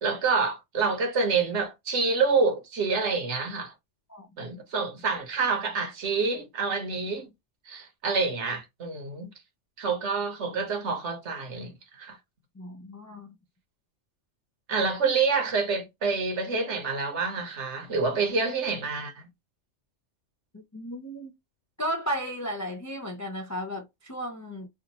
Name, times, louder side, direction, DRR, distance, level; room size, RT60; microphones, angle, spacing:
voice 1, 0.0-3.7 4.4-7.3 7.7-9.3 9.8-12.2 14.7-19.3, right 4 dB, 65° right, 1.3 m, -27 dB
voice 2, 12.6-13.3 20.5-21.3 21.8-24.7, equal, 30° left, 0.3 m, -34 dB
3.5 x 2.4 x 2.8 m
omnidirectional pair, 1.3 m